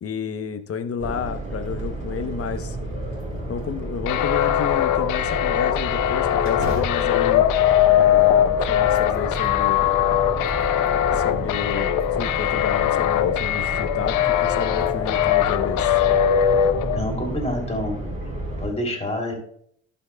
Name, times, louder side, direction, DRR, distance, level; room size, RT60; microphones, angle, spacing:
voice 1, 0.0-2.8 3.5-7.5 7.9-9.8 11.1-16.0, left 7 dB, 50° left, 9 dB, 0.9 m, -31 dB
sound 1, 1.0-18.7, right 2 dB, 25° right, 4.1 m, -31 dB
sound 2, 1.6-2.1 2.6-2.7 3.2-4.0 6.4-8.4 8.8-9.5 10.2-11.0 11.9-12.6 14.1-14.2 14.7-14.9 15.4-15.5 16.5-16.8, right 1 dB, 60° right, 2.7 m, -39 dB
sound 3, 4.1-17.0, left 11 dB, 90° left, 0.7 m, -21 dB
voice 2, 16.9-18.1 18.6-19.3, left 1 dB, 20° left, 1 dB, 2.9 m, -27 dB
17.0 x 5.7 x 2.2 m, 0.66 s
cardioid pair, 90°, 30 cm